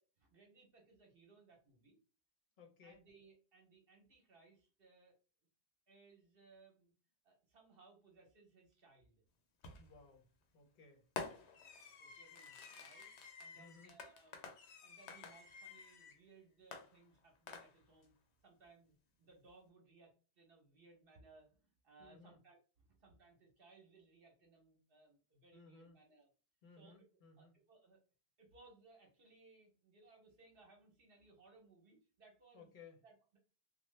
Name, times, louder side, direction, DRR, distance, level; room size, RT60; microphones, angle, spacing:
voice 1, 0.0-2.0 2.8-5.2 5.9-6.9 7.2-9.2 12.0-13.1 13.4-14.5 14.8-18.1 18.4-26.3 26.8-27.0 27.4-28.0 28.4-32.7 33.0-33.4, right 3 dB, 60° right, 1 dB, 1.0 m, -65 dB
voice 2, 2.6-3.0 9.8-10.3 10.5-11.1 13.6-13.9 22.0-22.4 25.5-26.0 26.6-27.5 32.5-33.0, left 4 dB, 50° left, 3 dB, 0.8 m, -60 dB
Fireworks, 9.6-10.0 11.2-16.2 16.7-18.1, left 5 dB, 90° left, 0.9 m, -51 dB
2.8 x 2.2 x 3.1 m, 0.36 s
omnidirectional pair, 1.1 m